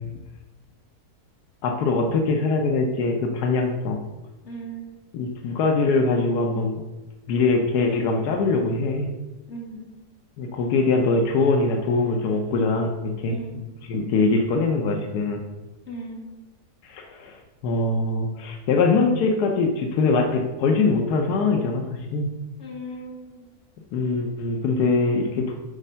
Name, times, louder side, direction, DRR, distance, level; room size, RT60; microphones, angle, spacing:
voice 1, 1.6-4.0 5.1-6.8 7.3-9.1 10.4-13.4 13.8-15.4 16.8-17.4 17.6-22.3 23.9-25.6, left 3 dB, 90° left, 3 dB, 1.3 m, -22 dB
voice 2, 4.4-4.8 9.5-9.9 13.3-13.6 15.9-16.2 22.6-23.5, right 1 dB, 45° left, -2 dB, 2.2 m, -37 dB
8.9 x 4.1 x 5.5 m, 1.1 s
omnidirectional pair, 1.7 m